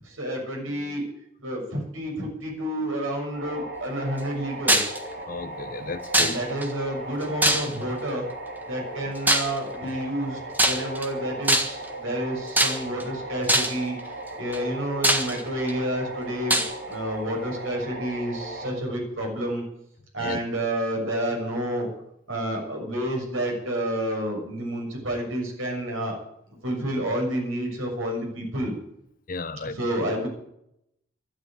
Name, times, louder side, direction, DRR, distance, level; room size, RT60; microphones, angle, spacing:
voice 1, 0.2-1.0 1.4-4.9 6.2-8.2 8.7-13.9 14.4-19.6 20.1-21.9 22.3-26.2 26.6-28.7 29.7-30.3, right 1 dB, 85° right, 6.7 m, -29 dB
sound 1, 3.3-18.7, right 2 dB, 50° right, 5.6 m, -37 dB
sound 2, 4.7-5.0 6.1-6.7 7.4-7.9 9.3-9.6 10.5-11.1 11.5-11.9 12.6-13.0 13.5-13.8 14.5-14.6 15.0-15.7 16.5-16.7, right 1 dB, 10° right, 1.6 m, -21 dB
voice 2, 5.3-6.4 20.2-20.4 29.3-30.0, left 3 dB, 45° left, 0.8 m, -34 dB
13.0 x 11.5 x 9.0 m
head